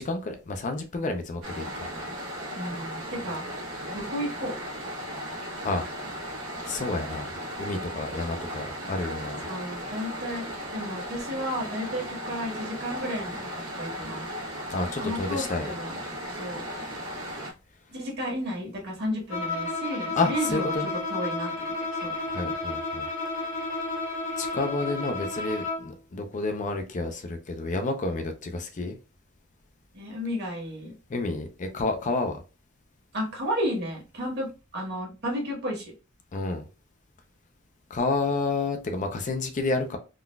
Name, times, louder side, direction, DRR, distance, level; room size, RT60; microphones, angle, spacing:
voice 1, 0.0-1.9 5.6-5.8 6.6-7.3 7.6-9.4 14.7-15.7 20.2-20.9 22.3-23.1 24.4-29.0 31.1-32.4 36.3-36.6 37.9-40.0, left 3 dB, 40° left, 0.4 m, -30 dB
sound 1, 1.4-17.5, equal, 85° right, 1.1 m, -36 dB
voice 2, 2.5-3.5 3.9-4.6 9.4-10.5 10.7-13.5 13.8-14.3 15.0-16.0 16.4-16.6 17.9-20.7 21.1-21.5 22.0-22.1 29.9-30.9 33.1-35.9, equal, 55° right, 1.4 m, -32 dB
Bowed string instrument, 19.3-25.9, left 2 dB, 85° left, 1.6 m, -32 dB
3.7 x 2.4 x 2.2 m
head